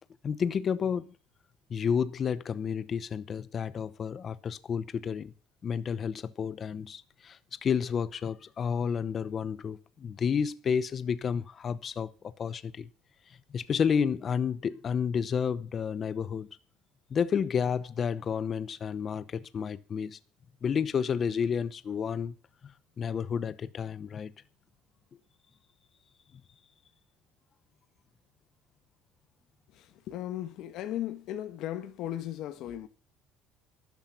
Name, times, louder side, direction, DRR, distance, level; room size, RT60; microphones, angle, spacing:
voice 1, 0.2-1.1 1.7-5.3 5.6-12.9 13.3-16.5 17.1-20.2 20.6-22.3 22.6-22.7 23.0-24.3, left 7 dB, 35° left, 0.8 m, -31 dB
voice 2, 29.7-32.9, left 12 dB, 60° left, 1.3 m, -36 dB
12.5 x 10.5 x 5.9 m
cardioid pair, 130°, 0 cm